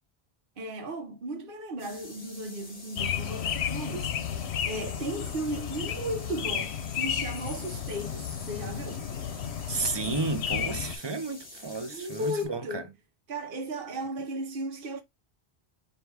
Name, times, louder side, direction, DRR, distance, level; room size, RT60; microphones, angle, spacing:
voice 1, 0.6-4.2 4.6-9.1 11.9-12.9 13.3-15.0, right 1 dB, 55° right, 1.1 m, -35 dB
sound 1, 1.8-12.5, left 2 dB, 35° left, 1.4 m, -48 dB
sound 2, 3.0-11.0, left 8 dB, 80° left, 0.9 m, -33 dB
voice 2, 9.7-12.8, right 4 dB, 35° right, 0.5 m, -32 dB
3.3 x 2.8 x 4.6 m
omnidirectional pair, 1.1 m